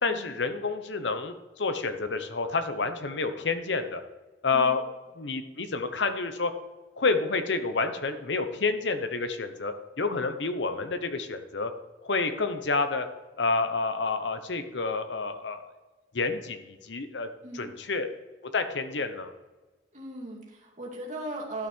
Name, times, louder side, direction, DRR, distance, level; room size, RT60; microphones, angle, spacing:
voice 1, 0.0-4.0 4.4-4.8 5.2-6.5 7.0-11.7 12.0-13.1 13.4-15.6 16.1-17.3 17.5-18.1 18.5-19.3, left 4 dB, 85° left, 9 dB, 0.9 m, -29 dB
voice 2, 19.9-21.7, right 1 dB, 45° right, -1 dB, 2.4 m, -38 dB
12.0 x 6.2 x 4.5 m, 1.2 s
head